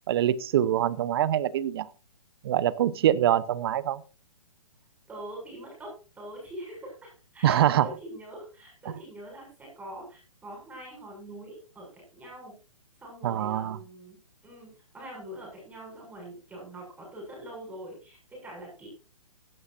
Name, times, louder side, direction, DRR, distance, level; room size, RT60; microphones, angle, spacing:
voice 1, 0.1-1.9 2.4-4.0 7.4-7.9 13.2-13.8, right 11 dB, 45° right, 1.0 m, -24 dB
voice 2, 5.1-12.5 13.0-14.2 14.4-18.9, right 1 dB, 10° right, 7.0 m, -43 dB
17.0 x 12.5 x 2.6 m
figure-of-eight pair, 130°, 18 cm